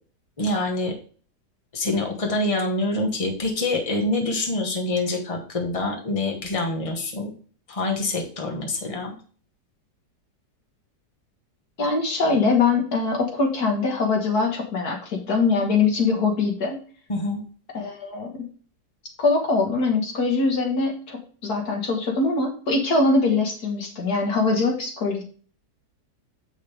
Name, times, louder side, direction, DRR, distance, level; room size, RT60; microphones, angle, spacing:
voice 1, 0.4-0.9 1.7-7.3 7.7-9.1 17.1-17.4, left 2 dB, 20° left, 1 dB, 1.6 m, -26 dB
voice 2, 11.8-16.8 17.7-18.5 19.2-25.2, left 3 dB, 65° left, 2 dB, 2.1 m, -23 dB
7.7 x 6.5 x 3.5 m, 0.41 s
omnidirectional pair, 1.8 m